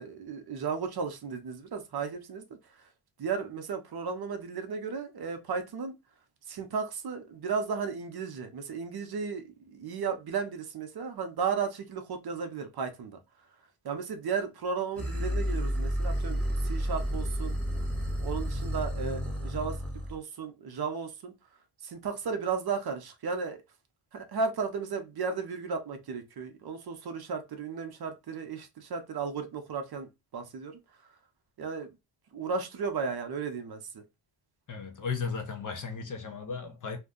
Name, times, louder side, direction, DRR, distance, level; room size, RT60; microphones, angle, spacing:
voice 1, 0.0-2.9 3.2-6.0 6.5-13.2 13.8-17.6 18.2-21.3 21.8-23.6 24.1-30.8 31.6-32.0 32.3-34.0, right 5 dB, 50° right, 0.6 m, -34 dB
sound 1, 15.0-20.2, equal, ahead, 0.8 m, -31 dB
voice 2, 34.7-37.0, left 5 dB, 40° left, 0.5 m, -35 dB
2.6 x 2.2 x 3.6 m
wide cardioid pair, 170°, 49 cm